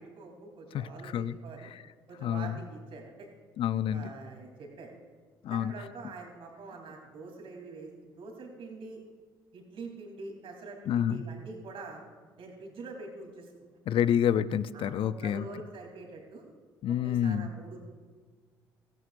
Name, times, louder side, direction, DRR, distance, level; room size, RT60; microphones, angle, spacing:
voice 1, 0.0-1.7 2.1-3.3 3.9-4.9 5.5-9.0 9.5-12.0 12.4-13.5 14.7-16.4 16.9-17.8, right 3 dB, 55° right, 2 dB, 3.4 m, -45 dB
voice 2, 0.7-1.4 1.7-1.8 2.2-2.6 3.6-4.1 5.4-5.7 10.9-11.2 13.9-15.5 16.8-17.5, left 9 dB, 55° left, 16 dB, 0.5 m, -28 dB
16.5 x 14.5 x 2.6 m, 1.5 s
hypercardioid pair, 60°, 11 cm